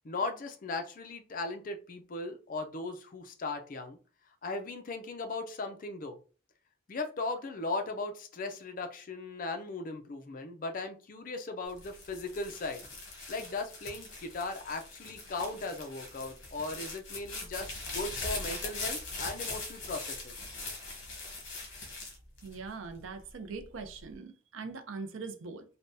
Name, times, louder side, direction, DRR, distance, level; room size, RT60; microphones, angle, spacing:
voice 1, 0.0-4.0 4.4-6.2 6.9-12.8 13.3-20.3, left 3 dB, 40° left, 0.4 m, -37 dB
sound 1, 11.7-23.1 23.6-24.2, left 3 dB, 60° left, 1.0 m, -41 dB
voice 2, 22.4-25.6, right 4 dB, 75° right, 0.5 m, -42 dB
3.4 x 2.1 x 2.6 m
head